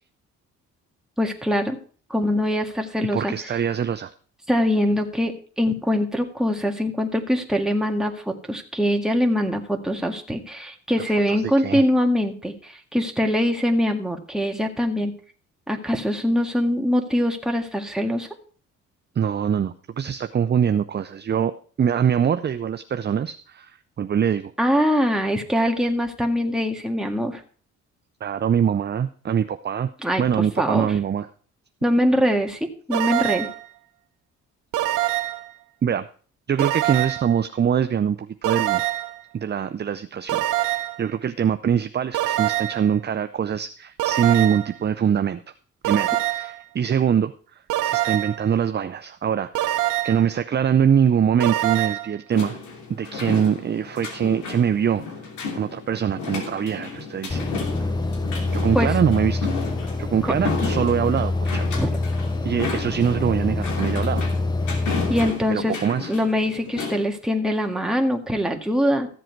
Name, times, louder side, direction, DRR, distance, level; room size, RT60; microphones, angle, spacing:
voice 1, 1.2-1.8 2.1-3.3 4.5-15.1 15.7-18.3 24.6-27.4 30.0-30.2 30.6-30.9 31.8-33.5 58.7-59.0 60.2-60.3 61.7-61.9 65.1-65.8 66.1-69.1, equal, ahead, 2 dB, 1.8 m, -23 dB
voice 2, 3.1-4.1 11.3-11.8 19.2-24.5 28.2-29.9 30.2-31.3 35.8-36.1 36.5-38.8 39.3-45.4 45.8-47.3 47.8-52.6 52.9-55.0 55.5-57.4 58.5-59.6 60.0-61.7 62.4-64.3 65.5-66.1, right 8 dB, 35° right, 10 dB, 0.6 m, -23 dB
sound 1, 32.9-33.6 34.7-35.5 36.6-37.3 38.4-39.2 40.3-41.0 42.1-42.9 44.0-44.7 45.8-46.6 47.7-48.4 49.5-50.3 51.4-52.1, right 15 dB, 85° right, 0.9 m, -24 dB
sound 2, 52.3-67.0, left 4 dB, 75° left, 2.9 m, -33 dB
sound 3, 57.3-65.3, left 2 dB, 15° left, 0.8 m, -26 dB
14.5 x 7.7 x 4.6 m, 0.43 s
cardioid pair, 90°, 30 cm